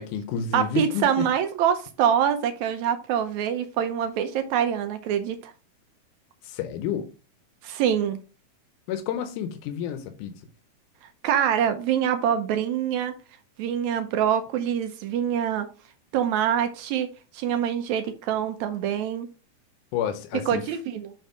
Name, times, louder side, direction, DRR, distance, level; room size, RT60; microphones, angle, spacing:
voice 1, 0.0-1.2 6.4-7.1 8.9-10.3 19.9-20.6, left 8 dB, 90° left, 2.3 m, -30 dB
voice 2, 0.5-5.5 7.6-8.2 11.2-13.1 13.6-15.7 16.1-19.3 20.5-21.1, right 9 dB, 75° right, 1.9 m, -25 dB
6.8 x 3.5 x 4.8 m
omnidirectional pair, 3.5 m